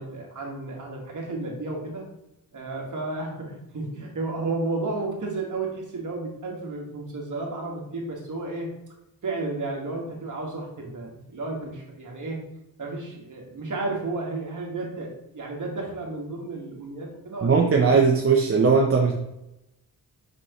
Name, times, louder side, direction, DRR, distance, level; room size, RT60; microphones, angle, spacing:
voice 1, 0.0-2.1 2.5-8.7 9.2-12.4 12.8-17.9, right 2 dB, 55° right, -1 dB, 1.8 m, -32 dB
voice 2, 17.4-19.1, right 5 dB, 35° right, 0 dB, 0.7 m, -19 dB
6.0 x 5.6 x 3.1 m, 0.87 s
wide cardioid pair, 130°, 37 cm